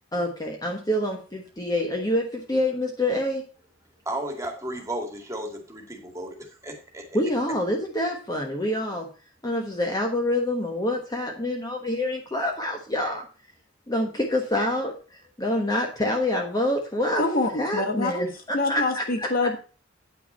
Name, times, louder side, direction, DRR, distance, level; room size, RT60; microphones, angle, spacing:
voice 1, 0.1-3.5 7.1-9.1 9.4-13.2 13.9-17.2 17.6-19.3, left 1 dB, 20° left, 1 dB, 1.3 m, -26 dB
voice 2, 4.1-7.0, right 1 dB, 15° right, 2 dB, 2.1 m, -34 dB
voice 3, 17.2-18.3 18.5-19.6, left 2 dB, 50° left, 5 dB, 1.4 m, -25 dB
9.3 x 6.0 x 5.4 m, 0.36 s
head